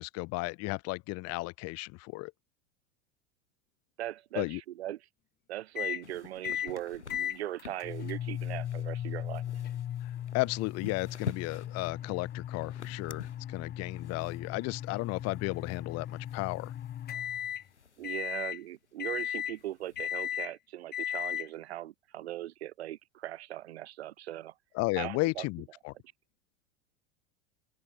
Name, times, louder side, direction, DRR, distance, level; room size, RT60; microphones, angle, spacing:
voice 1, 0.0-2.3 4.4-4.6 10.0-16.7 24.7-25.9, left 24 dB, 45° left, 2.0 m, -34 dB
voice 2, 4.0-5.0 5.5-9.4 18.0-24.5 25.0-25.5, right 13 dB, 70° right, 1.2 m, -39 dB
sound 1, 5.7-6.0 6.4-6.7 7.1-17.6 18.0-18.6 19.0-19.6 20.0-20.5 20.9-21.5, left 11 dB, 30° left, 1.5 m, -37 dB
sound 2, 6.0-18.4 18.7-18.8 19.0-20.3, left 5 dB, 85° left, 6.0 m, -49 dB
open air
figure-of-eight pair, 85°, 34 cm